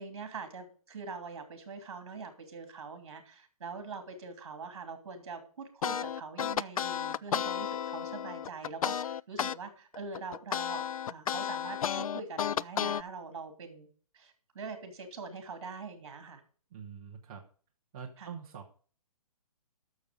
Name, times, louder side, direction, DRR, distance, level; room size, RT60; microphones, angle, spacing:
voice 1, 0.0-13.9 14.1-16.4 18.2-18.3, right 4 dB, 45° right, 6 dB, 3.0 m, -43 dB
sound 1, 5.8-9.6 9.9-13.0, left 9 dB, 65° left, 0.4 m, -32 dB
voice 2, 16.7-17.4 17.9-18.7, right 7 dB, 10° right, -2 dB, 0.6 m, -45 dB
12.0 x 6.9 x 5.0 m, 0.42 s
hypercardioid pair, 180°, 19 cm